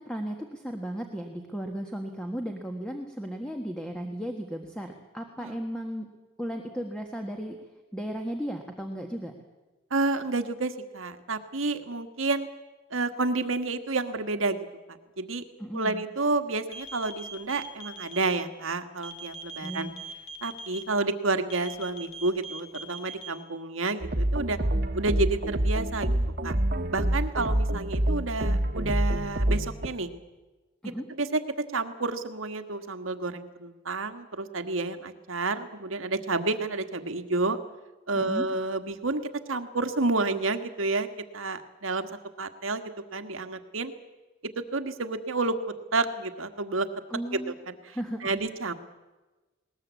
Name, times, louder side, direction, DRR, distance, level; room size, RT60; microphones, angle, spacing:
voice 1, 0.0-6.1 6.4-7.6 7.9-9.3 15.6-16.0 19.6-20.0 30.8-31.0 38.1-38.5 47.1-47.6 47.9-48.3, equal, 5° left, 3 dB, 1.5 m, -35 dB
voice 2, 9.9-12.5 12.9-14.6 15.2-15.4 15.7-19.9 20.4-24.6 24.9-26.1 26.4-26.5 26.9-30.1 31.2-31.4 31.7-37.6 38.1-39.2 39.5-41.1 41.3-42.1 42.4-43.9 44.5-45.6 45.9-46.9 47.7-48.7, right 3 dB, 85° right, 8 dB, 1.6 m, -30 dB
sound 1, 16.7-18.4 19.0-20.8 21.5-23.3, right 3 dB, 80° left, 2.9 m, -40 dB
sound 2, 24.0-29.9, right 1 dB, 45° right, 1.2 m, -27 dB
20.5 x 19.5 x 8.3 m, 1.2 s
head